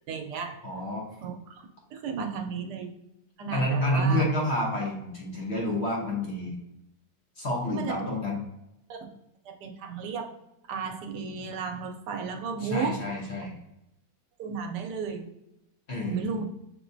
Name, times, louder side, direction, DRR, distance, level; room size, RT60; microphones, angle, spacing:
voice 1, 0.1-0.6 1.2-2.9 3.4-4.3 7.7-8.1 8.9-9.0 9.5-10.3 10.7-13.0 14.4-15.3 16.0-16.4, right 5 dB, 85° right, 4 dB, 1.2 m, -34 dB
voice 2, 0.6-1.1 3.5-6.6 7.4-8.4 12.6-13.5 15.9-16.4, equal, 45° left, -2 dB, 1.0 m, -29 dB
6.8 x 3.0 x 2.6 m, 0.86 s
omnidirectional pair, 1.8 m